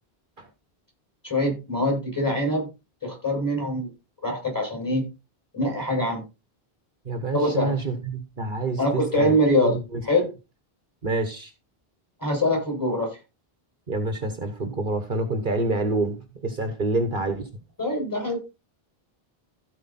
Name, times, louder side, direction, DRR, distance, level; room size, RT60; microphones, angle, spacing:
voice 1, 1.2-2.7 3.0-3.9 4.2-5.0 5.5-6.2 7.3-7.7 8.8-9.8 10.0-10.3 12.2-13.2 17.8-18.4, left 1 dB, 20° left, 0 dB, 6.1 m, -24 dB
voice 2, 7.0-9.3 9.6-10.0 11.0-11.5 13.9-17.5, right 2 dB, 55° right, 7 dB, 1.5 m, -27 dB
15.5 x 5.2 x 4.2 m, 0.28 s
omnidirectional pair, 1.0 m